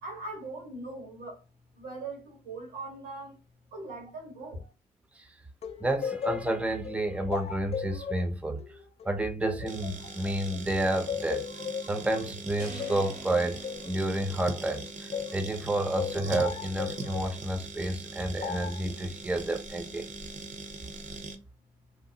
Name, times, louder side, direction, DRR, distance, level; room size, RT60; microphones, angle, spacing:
voice 1, 0.0-1.4 1.7-3.4 3.7-4.7, right 2 dB, 85° right, 1.4 m, -40 dB
sound 1, 5.6-10.6 11.1-15.4 16.0-17.4 18.4-18.9, left 7 dB, 40° left, 0.4 m, -37 dB
voice 2, 5.8-8.6 9.0-11.5 11.8-20.1, right 1 dB, 5° right, 0.6 m, -30 dB
sound 2, 9.7-21.4, right 2 dB, 45° right, 0.7 m, -41 dB
sound 3, 12.6-14.9, right 2 dB, 65° right, 1.0 m, -47 dB
2.9 x 2.0 x 2.8 m
supercardioid pair, 50°, 17 cm